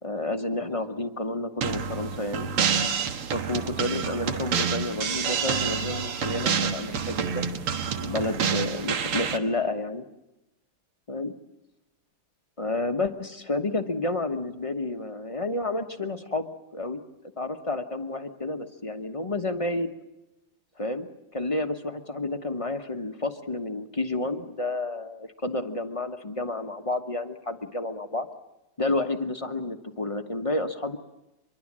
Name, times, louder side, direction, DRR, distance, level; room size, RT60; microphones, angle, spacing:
voice 1, 0.0-2.5 3.3-7.5 8.0-10.0 11.1-11.3 12.6-17.0 17.4-19.9 20.8-28.3 28.8-31.0, left 2 dB, 30° left, 7 dB, 0.6 m, -30 dB
sound 1, 1.6-9.4, right 6 dB, 80° right, 2.3 m, -28 dB
25.0 x 23.0 x 7.5 m, 0.98 s
omnidirectional pair, 2.4 m